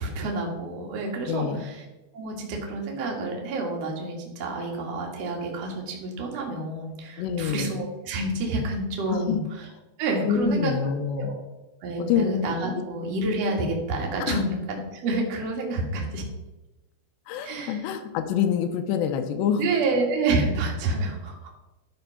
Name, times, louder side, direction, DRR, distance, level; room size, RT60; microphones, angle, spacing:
voice 1, 0.0-1.8 2.1-9.4 10.0-10.9 11.2-11.4 11.8-16.2 17.4-17.8 19.6-21.5, right 2 dB, 50° right, 0 dB, 2.3 m, -28 dB
voice 2, 1.3-1.6 7.2-7.7 9.1-9.4 10.3-11.4 12.0-12.2 14.2-14.4 17.3-19.6, left 8 dB, 90° left, 7 dB, 2.9 m, -26 dB
12.0 x 4.6 x 5.7 m, 1.0 s
omnidirectional pair, 5.0 m